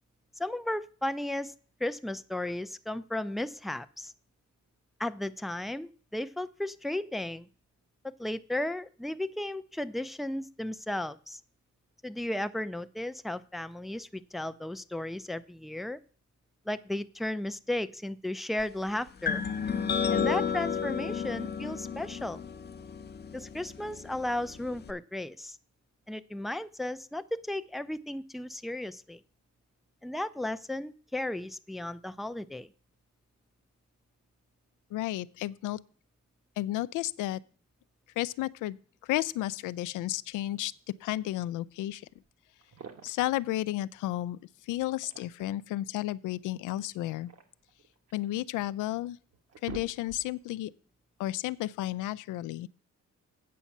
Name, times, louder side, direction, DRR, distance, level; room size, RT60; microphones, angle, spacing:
voice 1, 0.4-1.5 1.8-4.1 5.0-7.5 8.0-11.4 12.0-16.0 16.7-19.4 20.1-22.4 23.3-25.6 26.1-29.2 30.0-32.7, left 1 dB, ahead, 0.4 m, -35 dB
sound 1, 19.2-24.9, left 6 dB, 35° left, 0.7 m, -32 dB
voice 2, 34.9-35.8 36.6-37.4 38.2-38.8 39.1-40.7 41.0-42.0 43.0-44.4 44.7-47.3 48.1-49.2 49.6-50.7 51.2-52.7, left 15 dB, 85° left, 0.5 m, -32 dB
sound 2, 42.2-42.3 42.6-43.3 44.8-45.6 46.9-48.3 48.9-49.0 49.3-50.5, right 7 dB, 55° right, 1.5 m, -48 dB
8.5 x 5.3 x 7.2 m
cardioid pair, 90°, 30 cm